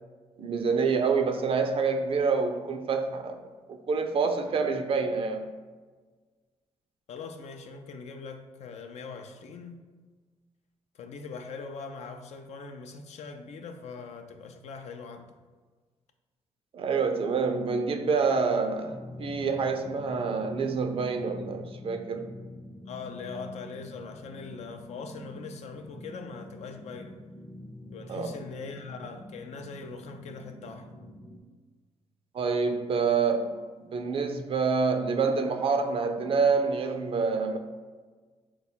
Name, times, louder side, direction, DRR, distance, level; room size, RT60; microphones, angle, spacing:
voice 1, 0.4-3.4 3.7-5.5 16.7-22.3 28.1-28.3 32.3-33.6 33.9-37.6, right 5 dB, 55° right, 6 dB, 0.5 m, -27 dB
voice 2, 7.1-9.8 10.9-15.3 22.9-27.2 27.9-30.9, left 4 dB, 75° left, 5 dB, 0.4 m, -41 dB
sound 1, 18.8-31.4, left 1 dB, 25° left, 0.5 m, -46 dB
3.8 x 2.2 x 4.3 m, 1.4 s
cardioid pair, 75°, 11 cm